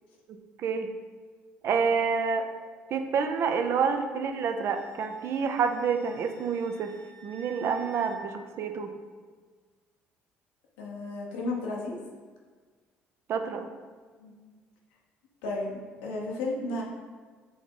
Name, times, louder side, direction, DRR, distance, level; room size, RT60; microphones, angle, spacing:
voice 1, 0.3-0.9 1.6-2.5 2.9-6.9 7.2-8.9 13.3-13.7, right 6 dB, 55° right, 6 dB, 0.4 m, -28 dB
Wind instrument woodwind instrument, 4.6-8.2, right 4 dB, 85° right, 0.9 m, -52 dB
voice 2, 10.8-11.9 14.2-14.3 15.4-16.8, left 2 dB, 85° left, -2 dB, 0.8 m, -33 dB
4.7 x 2.8 x 3.6 m, 1.5 s
hypercardioid pair, 65°, 5 cm